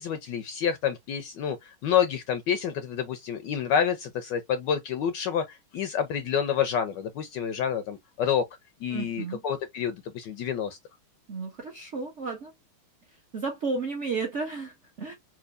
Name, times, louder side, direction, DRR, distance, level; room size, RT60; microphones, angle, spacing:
voice 1, 0.0-8.5 8.8-10.8, left 8 dB, 75° left, 1.0 m, -28 dB
voice 2, 8.9-9.4 11.3-12.5 13.3-15.1, right 4 dB, 55° right, 0.8 m, -33 dB
4.3 x 2.5 x 2.4 m
omnidirectional pair, 2.3 m